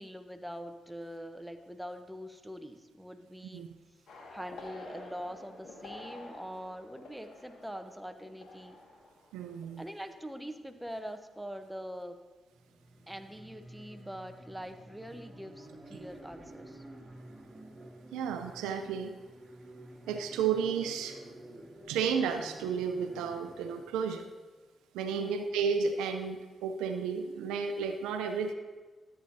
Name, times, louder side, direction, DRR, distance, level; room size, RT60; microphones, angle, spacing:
voice 1, 0.0-3.7 4.3-8.8 9.8-12.2 13.1-16.8 25.1-25.5, equal, 5° right, 7 dB, 0.9 m, -43 dB
sound 1, 4.1-10.5 10.8-11.1, left 2 dB, 70° left, 1.9 m, -50 dB
voice 2, 9.3-9.8 18.1-19.2 20.1-21.2 21.9-24.3 24.9-28.5, right 6 dB, 80° right, 7 dB, 0.5 m, -32 dB
sound 2, 12.5-23.9, right 1 dB, 25° right, 2.3 m, -51 dB
13.0 x 8.6 x 2.8 m, 1.3 s
hypercardioid pair, 40°, 0 cm